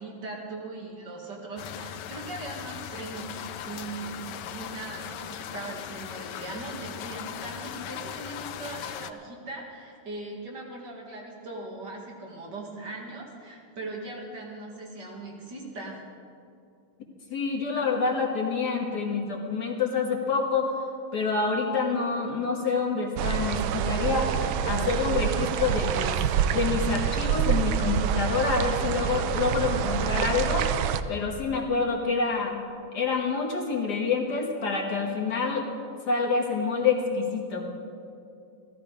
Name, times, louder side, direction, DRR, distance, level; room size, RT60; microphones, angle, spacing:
voice 1, 0.0-16.0, right 2 dB, 55° right, -1 dB, 2.6 m, -39 dB
sound 1, 1.6-9.1, left 10 dB, 75° left, 1.1 m, -39 dB
voice 2, 17.3-20.7 21.1-24.3 24.6-26.2 26.5-30.7 31.1-32.6 32.9-35.7 36.1-37.7, left 4 dB, 55° left, 0 dB, 1.8 m, -27 dB
sound 2, 23.2-31.0, right 9 dB, 80° right, 1.4 m, -27 dB
15.0 x 14.0 x 5.0 m, 2.6 s
omnidirectional pair, 2.3 m